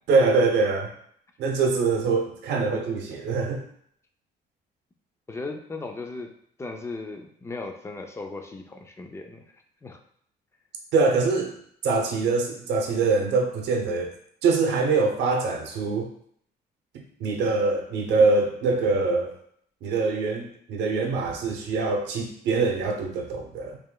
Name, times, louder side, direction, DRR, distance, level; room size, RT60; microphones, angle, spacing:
voice 1, 0.1-0.9 1.4-3.6 10.9-11.5 11.8-14.1 14.4-16.1 17.2-19.3 19.8-23.8, right 4 dB, 80° right, 2 dB, 0.8 m, -24 dB
voice 2, 5.3-6.3 6.6-9.4 9.8-10.0, left 3 dB, 15° left, 4 dB, 0.4 m, -37 dB
4.9 x 3.2 x 2.3 m, 0.65 s
cardioid pair, 150°, 18 cm